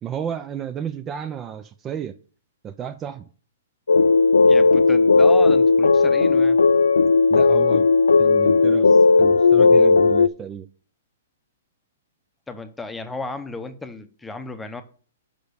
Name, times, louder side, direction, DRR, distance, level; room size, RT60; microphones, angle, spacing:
voice 1, 0.0-2.2 2.6-3.3 7.3-7.8 8.2-10.7, right 8 dB, 25° right, 10 dB, 0.4 m, -32 dB
sound 1, 3.9-10.3, left 4 dB, 85° left, 0.3 m, -15 dB
voice 2, 4.4-6.6 8.7-8.8 12.5-14.8, left 3 dB, 10° left, 9 dB, 0.8 m, -34 dB
5.3 x 5.0 x 6.5 m, 0.42 s
hypercardioid pair, 125°, 0 cm